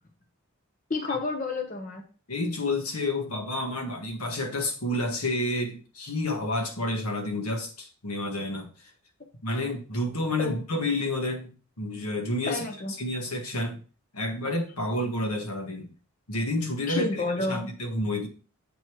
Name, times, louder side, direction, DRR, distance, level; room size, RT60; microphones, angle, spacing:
voice 1, 0.9-2.0 10.4-10.6 12.5-12.9 16.9-17.7, left 2 dB, 35° left, 0.9 m, -30 dB
voice 2, 2.3-8.9 9.4-11.5 11.8-12.6 13.0-13.8 14.1-15.9 16.3-18.3, left 1 dB, 90° left, 1.5 m, -30 dB
7.8 x 3.2 x 4.6 m
head